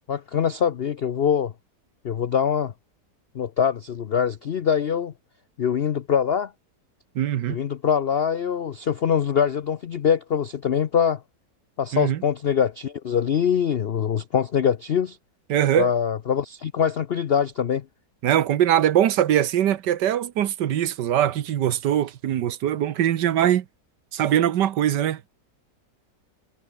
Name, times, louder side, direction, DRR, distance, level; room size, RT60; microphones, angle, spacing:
voice 1, 0.1-1.5 2.0-2.7 3.3-5.1 5.6-6.5 7.5-11.2 11.8-15.2 15.8-17.8, left 7 dB, 75° left, 0.5 m, -23 dB
voice 2, 7.1-7.6 11.9-12.2 15.5-15.9 18.2-23.6 24.1-25.2, right 11 dB, 75° right, 1.5 m, -22 dB
omnidirectional pair, 1.9 m